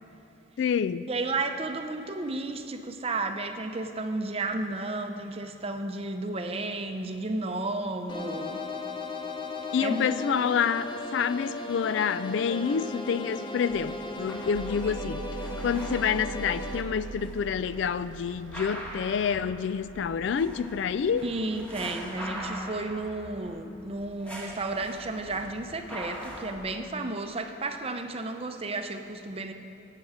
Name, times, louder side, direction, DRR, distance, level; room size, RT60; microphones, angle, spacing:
voice 1, 0.6-1.1 9.7-15.2 15.6-21.2, left 7 dB, 60° left, 15 dB, 0.3 m, -28 dB
voice 2, 1.1-8.6 9.8-10.2 21.1-29.5, right 2 dB, 30° right, 6 dB, 0.6 m, -33 dB
sound 1, 8.1-16.8, left 2 dB, 25° left, 0.7 m, -36 dB
sound 2, 13.7-26.6, equal, 5° left, 1.4 m, -43 dB
sound 3, 14.5-22.6, right 5 dB, 65° right, 0.4 m, -43 dB
17.5 x 8.5 x 4.9 m, 3.0 s
head